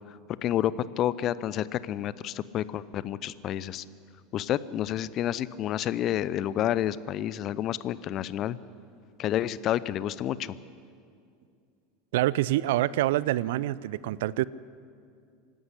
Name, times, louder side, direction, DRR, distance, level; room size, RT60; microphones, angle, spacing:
voice 1, 0.4-3.8 4.3-8.6 9.2-10.6, left 11 dB, 40° left, 18 dB, 0.6 m, -29 dB
voice 2, 12.1-14.4, right 15 dB, 60° right, 21 dB, 0.4 m, -26 dB
25.5 x 12.0 x 9.8 m, 2.4 s
figure-of-eight pair, 80°, 0 cm